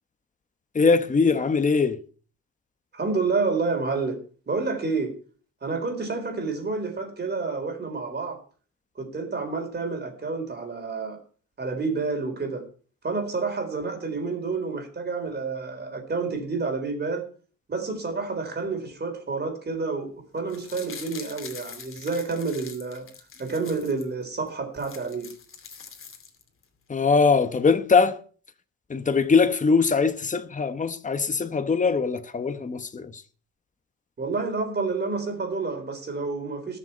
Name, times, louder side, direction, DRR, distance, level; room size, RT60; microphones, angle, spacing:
voice 1, 0.7-2.0 26.9-28.2 28.9-33.2, left 4 dB, 25° left, 1.2 m, -22 dB
voice 2, 2.9-4.2 4.5-5.1 5.6-8.4 9.0-11.2 11.6-12.6 13.0-17.2 17.7-23.1 23.4-25.3 34.2-36.8, right 4 dB, 35° right, 4.1 m, -29 dB
sound 1, 20.4-24.1 24.5-24.6 24.7-26.6 27.0-27.1, left 6 dB, 45° left, 2.6 m, -44 dB
20.0 x 6.8 x 4.4 m
cardioid pair, 90°, 30 cm